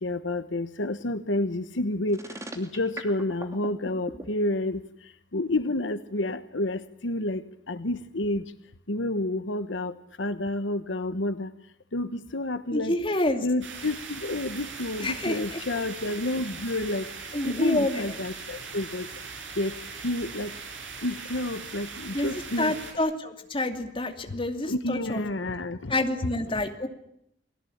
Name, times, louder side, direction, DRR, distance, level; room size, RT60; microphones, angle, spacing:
voice 1, 0.0-2.2 2.6-4.8 5.3-7.4 7.7-8.4 8.9-9.9 10.2-11.5 11.9-13.0 13.4-17.0 17.4-19.1 19.6-19.7 20.0-20.5 21.0-22.8 24.7-25.9 26.2-26.3, left 2 dB, 75° left, 11 dB, 1.2 m, -29 dB
sound 1, 2.1-4.2, right 1 dB, 15° right, 2.8 m, -38 dB
voice 2, 12.7-13.4 15.0-15.6 17.3-18.1 22.1-22.3 22.6-25.2 25.9-26.9, left 1 dB, 30° left, 4 dB, 2.6 m, -28 dB
sound 2, 13.6-22.9, right 5 dB, 75° right, 7.0 m, -40 dB
30.0 x 20.0 x 8.7 m, 0.76 s
head